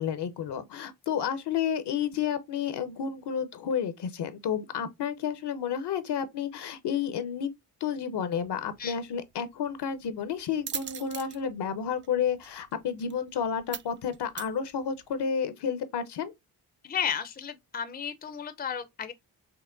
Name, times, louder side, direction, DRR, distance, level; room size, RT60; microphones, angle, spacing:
voice 1, 0.0-7.5 7.8-16.3, left 7 dB, 60° left, 0.8 m, -31 dB
sound 1, 8.3-15.2, right 8 dB, 30° right, 0.4 m, -43 dB
voice 2, 16.8-19.1, left 8 dB, 20° left, 0.6 m, -33 dB
5.6 x 2.1 x 2.5 m
supercardioid pair, 45°, 46 cm